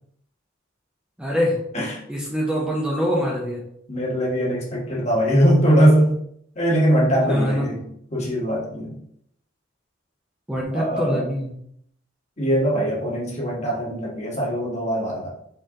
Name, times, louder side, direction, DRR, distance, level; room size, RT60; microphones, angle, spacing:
voice 1, 1.2-1.6 2.1-3.6 7.3-7.7 10.5-11.5, equal, 5° right, -4 dB, 0.7 m, -24 dB
voice 2, 3.9-6.1 6.5-7.8 8.1-8.9 10.7-11.3 12.4-15.3, equal, 35° left, -4 dB, 1.5 m, -21 dB
4.4 x 3.1 x 3.7 m, 0.71 s
head